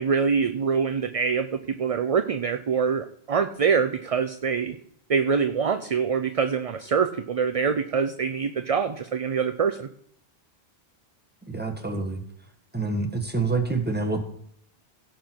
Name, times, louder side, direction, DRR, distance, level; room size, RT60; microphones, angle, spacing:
voice 1, 0.0-1.5 1.8-4.8 5.1-9.9, right 6 dB, 45° right, 9 dB, 0.5 m, -24 dB
voice 2, 11.5-12.2 12.7-14.2, right 3 dB, 10° right, 3 dB, 1.5 m, -27 dB
17.0 x 6.0 x 4.5 m, 0.67 s
omnidirectional pair, 1.1 m